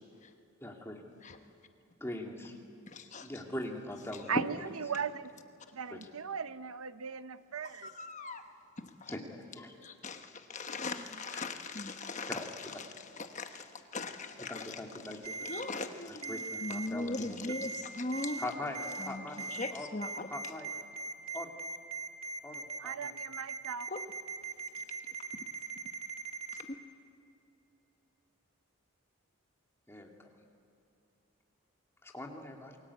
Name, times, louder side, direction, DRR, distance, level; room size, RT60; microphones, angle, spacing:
voice 1, 0.6-1.0 2.0-2.6 3.2-4.7 5.9-6.1 9.1-9.7 11.3-11.4 12.3-12.5 14.5-15.3 16.1-17.5 18.4-18.8 19.1-19.9 20.2-20.7 21.3-21.5 22.4-23.2 29.9-30.3 32.0-32.8, left 1 dB, 10° left, 1 dB, 2.5 m, -42 dB
voice 2, 2.9-3.3 7.8-8.4 8.8-9.1 9.8-12.4 13.3-14.7 15.4-16.3 16.6-18.4 19.0-19.2 19.5-20.3 23.9-24.0 26.7-26.8, left 2 dB, 35° left, 6 dB, 1.1 m, -39 dB
voice 3, 4.3-5.3 5.7-7.9 22.8-23.9, right 6 dB, 75° right, 13 dB, 0.7 m, -38 dB
Ringtone, 15.2-15.6 16.2-16.9 17.5-17.8 18.1-18.4 18.7-19.1 19.4-19.7 20.0-26.6, right 4 dB, 30° right, 2.1 m, -40 dB
28.0 x 22.5 x 8.4 m, 2.7 s
head